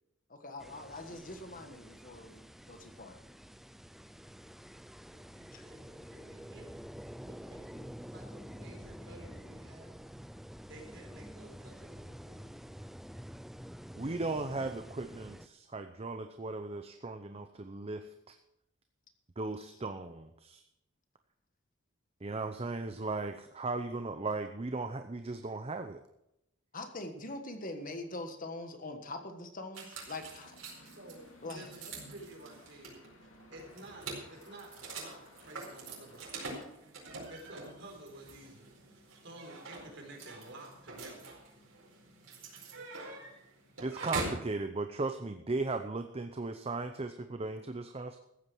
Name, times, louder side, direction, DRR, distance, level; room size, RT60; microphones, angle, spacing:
voice 1, 0.4-2.4 2.7-3.2 5.5-5.6 26.7-30.9 31.4-31.7, left 2 dB, 45° left, 6 dB, 1.6 m, -43 dB
sound 1, 0.6-15.5, equal, ahead, 0.4 m, -48 dB
voice 2, 5.1-6.7 7.3-9.9 10.7-12.7 31.0-33.0 33.5-36.6 37.3-38.7 39.2-41.4, right 1 dB, 65° right, 1 dB, 4.1 m, -52 dB
voice 3, 13.9-18.4 19.4-20.6 22.2-26.0 43.8-48.2, right 3 dB, 30° right, 7 dB, 0.7 m, -37 dB
sound 2, 29.7-44.5, right 3 dB, 90° right, 4.6 m, -45 dB
sound 3, 29.9-36.7, left 2 dB, 85° left, 2.3 m, -59 dB
14.5 x 8.7 x 6.1 m, 0.83 s
head